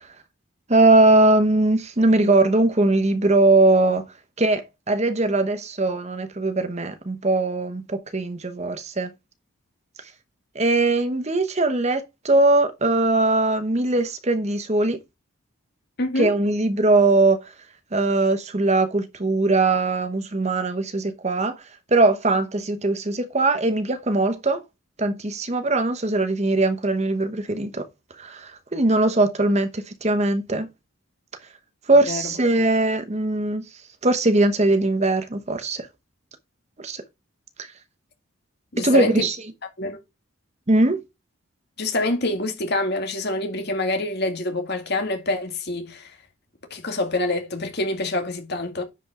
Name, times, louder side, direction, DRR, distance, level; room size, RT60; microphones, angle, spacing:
voice 1, 0.7-4.1 4.4-9.1 10.5-15.0 16.2-17.4 17.9-21.6 21.9-24.6 25.0-27.9 28.2-30.7 31.9-33.6 34.0-35.9 36.8-37.0 38.8-39.4 40.7-41.0, right 2 dB, 30° right, 0.9 m, -20 dB
voice 2, 16.0-16.3 32.1-32.3 38.7-39.3 39.8-40.0 41.8-46.1 46.7-48.8, left 2 dB, 50° left, 2.2 m, -26 dB
10.0 x 5.3 x 3.7 m
head